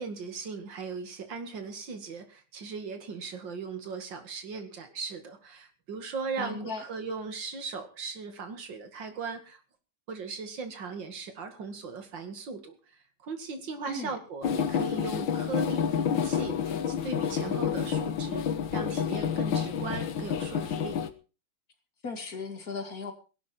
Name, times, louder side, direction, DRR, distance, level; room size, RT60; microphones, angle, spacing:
voice 1, 0.0-9.6 10.1-18.4 18.7-21.0, right 4 dB, 70° right, 7 dB, 2.8 m, -38 dB
voice 2, 6.4-6.8 13.9-14.2 22.0-23.1, left 3 dB, 50° left, 5 dB, 2.8 m, -36 dB
sound 1, 14.4-21.1, left 8 dB, 80° left, 1.9 m, -29 dB
17.5 x 11.5 x 4.5 m, 0.34 s
omnidirectional pair, 2.1 m